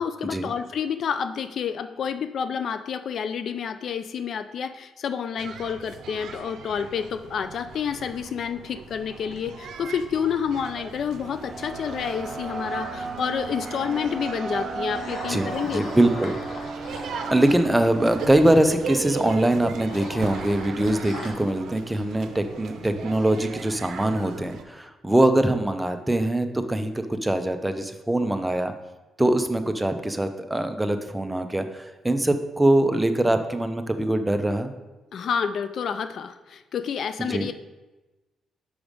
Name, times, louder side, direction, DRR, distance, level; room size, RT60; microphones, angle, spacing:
voice 1, 0.0-15.8 35.1-37.5, left 7 dB, 60° left, 11 dB, 0.3 m, -29 dB
sound 1, 5.4-24.6, right 6 dB, 70° right, 0.7 m, -39 dB
sound 2, 10.6-20.8, right 3 dB, 30° right, 0.9 m, -36 dB
sound 3, 13.3-13.7 14.9-18.3 19.5-21.3, left 2 dB, 80° left, 1.4 m, -40 dB
voice 2, 15.3-16.4 17.0-28.7 29.2-34.7 37.3-37.5, right 1 dB, 10° right, 7 dB, 0.6 m, -23 dB
6.2 x 4.9 x 5.1 m, 1.1 s
cardioid pair, 90°, 0 cm